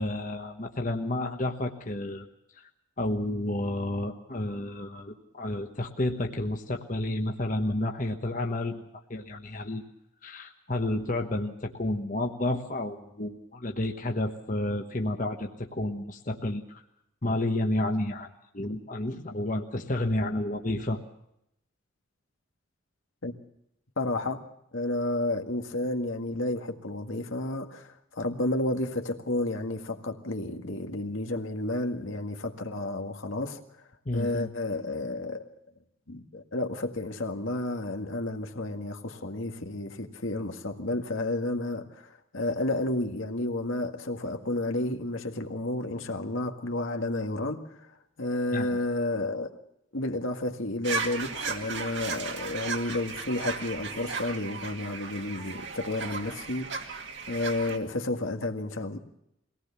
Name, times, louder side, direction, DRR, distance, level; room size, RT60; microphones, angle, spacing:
voice 1, 0.0-2.2 2.6-2.7 3.0-8.8 9.1-9.8 10.2-16.8 17.2-21.0 34.0-34.5 48.5-48.7, left 1 dB, 40° left, 1.2 m, -31 dB
voice 2, 24.0-24.4 24.7-33.6 34.1-35.5 36.1-47.9 48.2-49.5 49.9-59.0, left 2 dB, 75° left, 1.9 m, -31 dB
sound 1, 50.8-57.8, right 4 dB, 60° right, 2.1 m, -35 dB
23.0 x 18.5 x 7.0 m
head